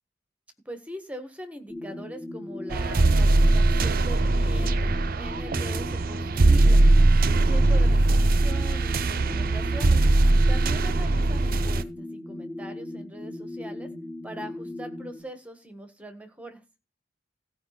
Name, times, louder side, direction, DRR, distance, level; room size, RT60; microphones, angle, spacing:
voice 1, 0.6-6.8 7.4-10.0 10.5-13.9 14.2-16.6, equal, 10° right, 7 dB, 1.6 m, -41 dB
sound 1, 1.7-15.2, left 1 dB, 30° left, 4.7 m, -38 dB
sound 2, 2.7-11.8, right 2 dB, 50° right, 0.6 m, -21 dB
15.0 x 5.1 x 5.9 m, 0.29 s
head